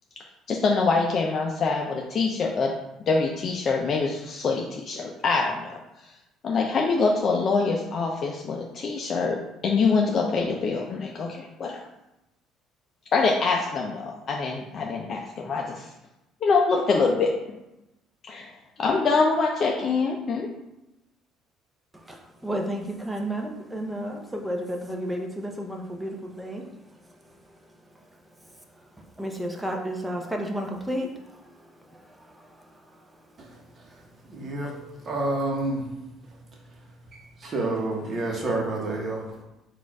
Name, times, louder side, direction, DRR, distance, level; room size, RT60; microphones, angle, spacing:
voice 1, 0.5-2.7 3.0-5.8 6.4-11.8 13.1-15.9 16.4-17.3 18.3-18.5 18.8-20.5, left 4 dB, 40° left, 0 dB, 0.5 m, -24 dB
voice 2, 22.1-26.6 29.2-31.1 31.9-32.0 32.3-32.5, equal, 10° right, 2 dB, 0.6 m, -31 dB
voice 3, 34.3-35.9 37.4-39.4, right 2 dB, 35° right, -1 dB, 1.0 m, -29 dB
4.3 x 2.4 x 4.6 m, 0.94 s
cardioid pair, 135°, 0 cm